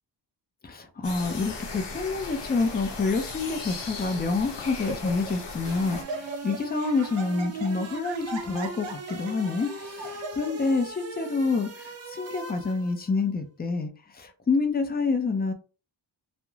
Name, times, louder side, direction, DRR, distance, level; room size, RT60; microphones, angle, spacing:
voice 1, 0.6-15.5, left 4 dB, 20° left, 6 dB, 0.4 m, -28 dB
sound 1, 1.0-6.0, left 3 dB, 65° left, 0.8 m, -37 dB
Laughter, 2.4-2.8 3.5-3.6 4.1-4.4 4.7-5.4 5.7-10.7, right 2 dB, 80° right, 0.6 m, -39 dB
sound 2, 5.6-13.1, right 3 dB, 35° right, 0.5 m, -40 dB
2.3 x 2.1 x 3.0 m, 0.35 s
wide cardioid pair, 115°, 45 cm